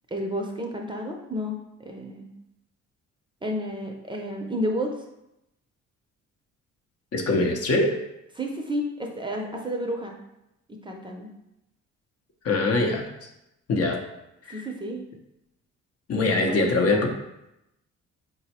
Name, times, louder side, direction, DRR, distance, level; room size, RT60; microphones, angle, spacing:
voice 1, 0.1-2.3 3.4-4.9 8.3-10.1 10.7-11.3 14.5-15.0 16.1-17.1, equal, 15° right, 1 dB, 0.5 m, -31 dB
voice 2, 7.1-8.0 12.4-13.1 13.7-14.0 14.5-14.6 16.1-17.1, left 2 dB, 50° left, 3 dB, 0.7 m, -23 dB
4.3 x 2.0 x 4.2 m, 0.87 s
cardioid pair, 90°, 30 cm